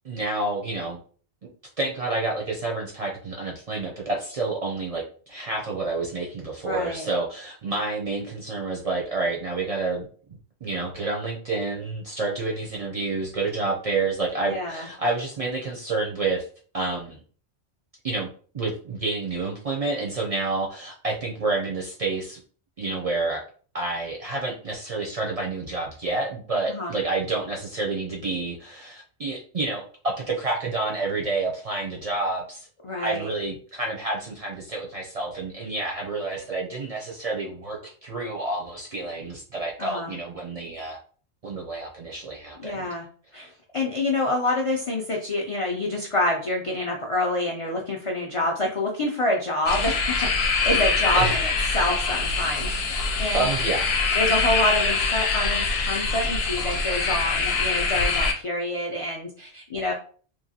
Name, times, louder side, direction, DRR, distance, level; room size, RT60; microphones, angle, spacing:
voice 1, 0.0-1.0 1.8-10.1 10.6-16.5 16.7-17.2 18.0-22.4 22.8-23.4 23.7-32.7 33.0-41.0 41.4-42.9 51.1-51.4 53.3-53.9, right 3 dB, 45° right, -1 dB, 0.5 m, -29 dB
voice 2, 6.6-7.1 14.5-14.9 26.7-26.9 32.8-33.3 39.8-40.1 42.6-43.0 43.3-53.5 54.1-59.9, left 1 dB, 55° left, 0 dB, 0.3 m, -27 dB
sound 1, 49.7-58.3, left 4 dB, 70° left, 0.8 m, -24 dB
3.0 x 2.4 x 2.7 m, 0.43 s
omnidirectional pair, 1.1 m